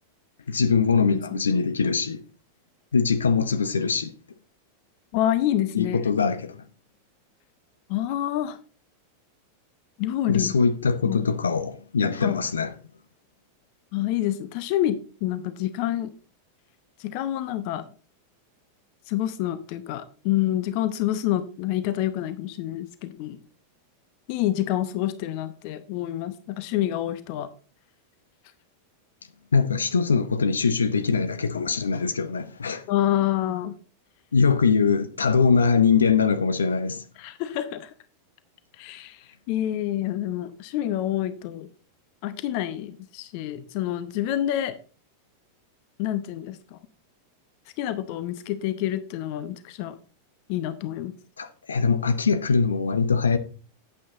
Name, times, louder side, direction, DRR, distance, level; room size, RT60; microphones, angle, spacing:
voice 1, 0.5-2.2 2.9-4.1 5.7-6.6 10.3-12.7 29.5-32.8 34.3-37.0 51.4-53.4, left 5 dB, 70° left, 0.9 m, -22 dB
voice 2, 1.1-1.4 5.1-6.1 7.9-8.6 10.0-10.5 11.0-11.3 12.2-12.4 13.9-16.1 17.0-17.8 19.1-23.4 24.3-27.5 32.9-33.8 37.2-37.9 38.8-41.7 42.2-44.8 46.0-46.8 47.8-49.9 50.5-51.1, left 12 dB, 45° left, 0.8 m, -27 dB
9.7 x 8.6 x 3.9 m
figure-of-eight pair, 90°, 0 cm